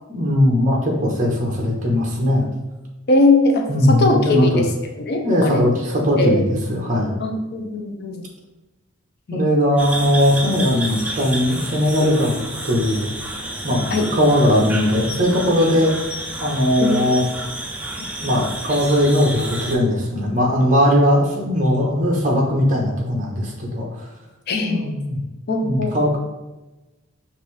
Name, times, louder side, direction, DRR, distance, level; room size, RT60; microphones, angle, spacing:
voice 1, 0.1-2.5 3.7-4.6 5.2-7.1 9.3-13.1 13.6-15.9 16.4-17.2 18.2-24.1 24.6-25.2 25.6-26.2, left 1 dB, 35° right, -1 dB, 0.9 m, -19 dB
voice 2, 3.1-4.7 5.0-5.6 6.2-6.4 7.2-8.3 9.3-9.5 13.9-14.1 16.8-16.9 24.5-25.0 25.5-26.0, left 2 dB, 50° left, 4 dB, 0.5 m, -20 dB
sound 1, 9.8-19.7, right 1 dB, 5° right, 0.3 m, -30 dB
5.3 x 2.6 x 3.2 m, 1.1 s
head